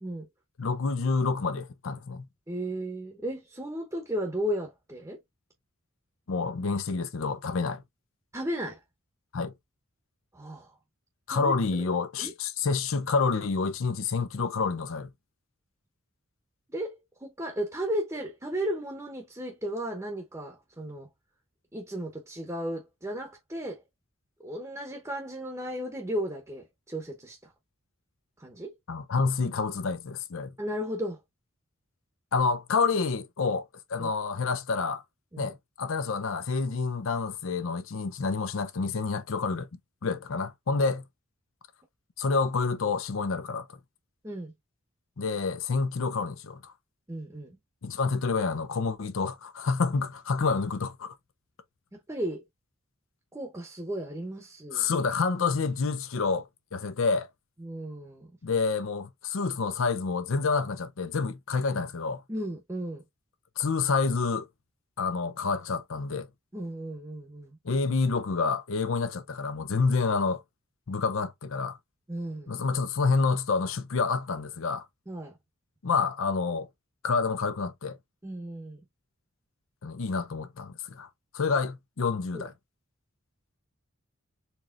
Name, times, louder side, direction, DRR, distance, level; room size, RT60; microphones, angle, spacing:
voice 1, 0.6-2.3 6.3-7.8 9.3-9.5 11.3-15.1 28.9-30.5 32.3-35.0 35.4-39.7 40.0-41.0 42.2-43.7 45.2-46.7 47.8-51.1 54.7-57.3 58.4-62.2 63.6-64.5 65.0-66.3 67.6-70.4 70.9-71.8 72.5-74.9 75.8-76.7 77.0-78.0 79.8-81.1 81.3-82.5, left 4 dB, 70° left, 0.6 m, -28 dB
voice 2, 2.5-5.2 8.3-8.8 10.3-10.8 11.3-11.6 12.2-12.3 16.7-21.1 21.7-23.8 24.4-27.5 28.4-28.7 30.6-31.2 34.0-34.1 35.3-35.5 44.2-44.5 47.1-47.6 51.9-52.4 53.3-54.9 57.6-58.3 62.3-63.0 66.5-67.5 72.1-72.5 75.1-75.4 78.2-78.8 82.3-82.4, equal, 15° right, 0.9 m, -35 dB
4.4 x 3.1 x 2.4 m
head